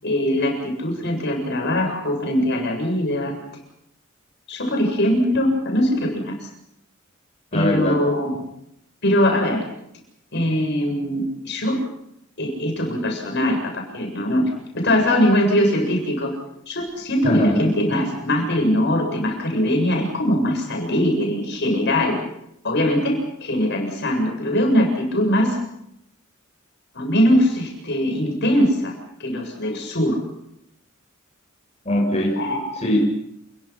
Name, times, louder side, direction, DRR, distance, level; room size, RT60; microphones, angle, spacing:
voice 1, 0.0-3.3 4.5-6.5 7.5-8.3 9.0-9.6 10.3-11.8 12.4-16.3 16.7-22.2 22.6-25.6 26.9-28.9 29.2-30.2 32.4-32.6, equal, 55° left, 2 dB, 7.5 m, -21 dB
voice 2, 7.5-8.0 17.2-17.7 31.8-32.4 32.8-33.1, left 1 dB, 30° left, -1 dB, 6.8 m, -20 dB
29.0 x 22.5 x 6.0 m, 0.77 s
head